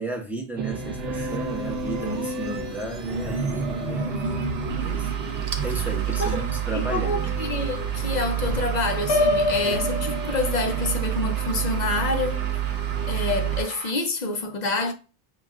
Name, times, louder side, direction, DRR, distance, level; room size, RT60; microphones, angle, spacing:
voice 1, 0.0-4.4 4.7-5.1 5.6-7.4, right 2 dB, ahead, 0.6 m, -33 dB
sound 1, 0.6-13.6, right 7 dB, 65° right, 0.9 m, -28 dB
sound 2, 1.0-13.9, right 5 dB, 50° right, 0.5 m, -39 dB
voice 2, 6.7-12.4 13.0-14.9, left 3 dB, 50° left, 0.6 m, -27 dB
Piano, 9.1-11.0, left 1 dB, 75° left, 0.9 m, -25 dB
6.4 x 2.2 x 2.4 m
omnidirectional pair, 1.2 m